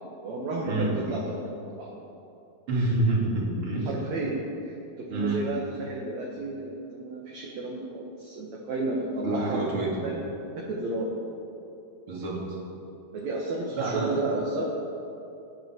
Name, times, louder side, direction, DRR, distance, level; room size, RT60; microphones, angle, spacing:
voice 1, 0.2-1.9 3.6-9.9 10.6-11.1 13.1-14.7, right 2 dB, 55° right, -3 dB, 2.3 m, -32 dB
voice 2, 2.7-3.9 5.1-5.4 9.2-10.1 12.1-12.6 13.8-14.2, right 2 dB, 35° right, -3 dB, 3.1 m, -27 dB
26.0 x 8.8 x 4.6 m, 2.8 s
omnidirectional pair, 4.6 m